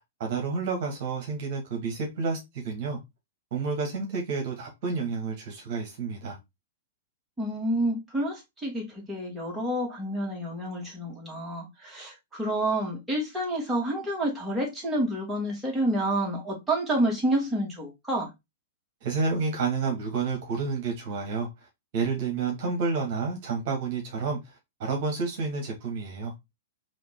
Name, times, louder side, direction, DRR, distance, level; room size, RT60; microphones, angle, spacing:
voice 1, 0.2-3.0 3.5-6.4 19.0-21.5 21.9-24.4 24.8-26.3, right 4 dB, 50° right, 1.4 m, -30 dB
voice 2, 7.4-18.3, right 1 dB, 10° right, 2.2 m, -29 dB
4.0 x 2.8 x 3.5 m
figure-of-eight pair, 105°, 0 cm